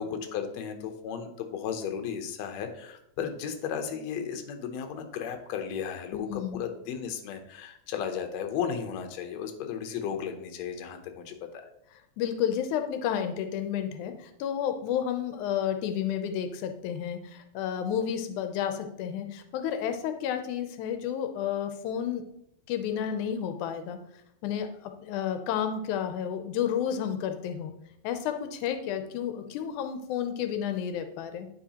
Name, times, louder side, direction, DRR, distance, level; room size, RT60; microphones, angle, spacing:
voice 1, 0.0-11.4, left 7 dB, 70° left, 5 dB, 1.8 m, -34 dB
voice 2, 6.1-6.6 12.2-22.3 22.7-24.0 24.4-27.7 28.0-31.5, left 9 dB, 90° left, 7 dB, 2.1 m, -31 dB
9.7 x 4.7 x 2.9 m, 0.78 s
omnidirectional pair, 3.4 m